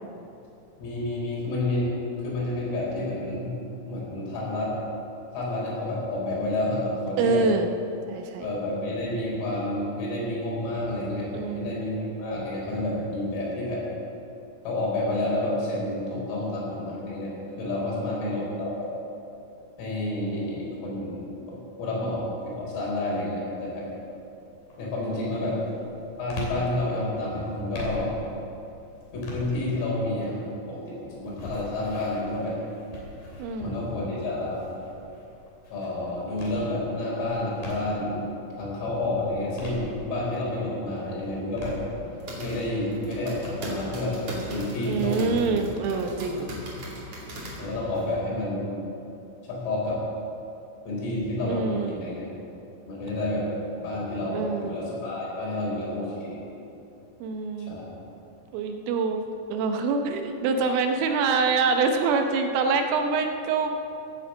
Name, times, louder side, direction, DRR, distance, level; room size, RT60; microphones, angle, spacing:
voice 1, 0.8-1.9 2.2-4.7 5.3-7.5 8.4-13.8 14.7-17.3 17.6-18.9 19.8-23.9 24.8-25.6 26.2-28.1 29.1-30.4 30.7-32.6 33.6-34.6 35.7-38.2 38.6-41.8 42.4-44.2 44.5-45.5 47.6-48.7 49.5-50.0 50.9-52.3 52.9-53.5 53.8-56.4 57.7-57.8, left 1 dB, 80° left, -5 dB, 7.1 m, -29 dB
voice 2, 7.2-7.7 8.1-8.5 11.3-11.8 25.0-25.5 33.4-33.7 44.9-46.5 51.5-52.0 54.3-54.8 57.2-57.8 58.5-59.2 59.5-63.9, right 4 dB, 80° right, 5 dB, 3.4 m, -26 dB
sound 1, 23.8-24.2 24.7-38.2 38.6-40.5 40.9-43.5, left 2 dB, 45° left, 4.1 m, -42 dB
sound 2, 41.9-48.1, equal, 40° right, 2.5 m, -38 dB
16.5 x 8.8 x 7.4 m, 2.8 s
omnidirectional pair, 6.0 m